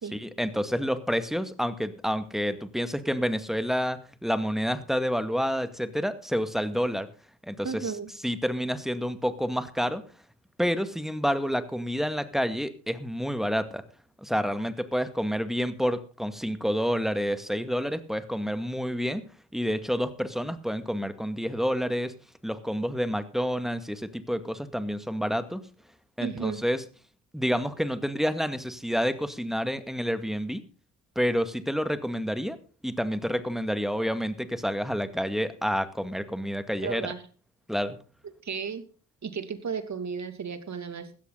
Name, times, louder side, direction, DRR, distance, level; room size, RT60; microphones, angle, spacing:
voice 1, 0.1-7.1 7.4-7.9 8.2-10.0 10.6-13.8 14.2-19.2 19.5-22.1 22.4-25.6 26.2-26.8 27.3-30.6 31.2-32.6 32.8-37.1 37.7-38.0, equal, ahead, 10 dB, 2.1 m, -29 dB
voice 2, 7.6-8.1 26.2-26.6 36.8-37.2 38.4-38.8 39.2-41.2, right 6 dB, 45° right, 9 dB, 2.7 m, -34 dB
16.0 x 13.5 x 4.1 m, 0.37 s
hypercardioid pair, 50°, 37 cm